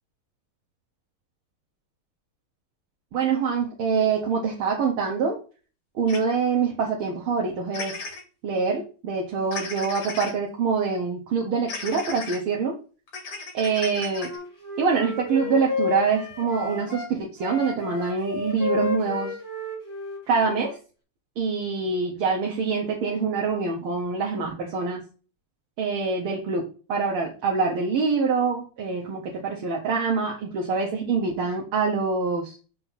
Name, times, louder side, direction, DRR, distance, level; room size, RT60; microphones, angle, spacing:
voice 1, 3.1-5.4 6.0-8.0 8.4-12.8 13.5-14.3 14.8-19.3 20.3-20.8 21.4-25.0 25.8-26.6 26.9-32.6, right 5 dB, 75° right, -1 dB, 2.0 m, -25 dB
sound 1, 6.1-6.2 7.7-8.2 9.5-10.3 11.7-12.4 13.1-14.4, left 4 dB, 80° left, 2.9 m, -35 dB
Wind instrument woodwind instrument, 14.2-17.1 17.4-20.8, left 5 dB, 10° left, 1.7 m, -32 dB
6.9 x 3.3 x 5.5 m, 0.35 s
omnidirectional pair, 2.4 m